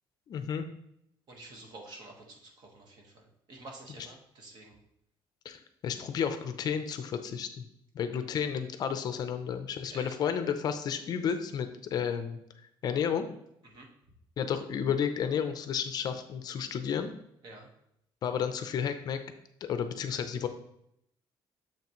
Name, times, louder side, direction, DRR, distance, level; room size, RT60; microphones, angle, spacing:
voice 1, 0.3-0.7 5.4-7.6 7.9-12.4 12.8-13.3 14.4-17.1 18.2-19.2 19.6-20.5, left 7 dB, 45° left, 9 dB, 0.5 m, -32 dB
voice 2, 1.3-4.8 9.9-10.2 13.6-13.9 17.4-17.7, right 2 dB, 45° right, 1 dB, 1.4 m, -49 dB
7.0 x 5.8 x 3.0 m, 0.75 s
cardioid pair, 165°, 10 cm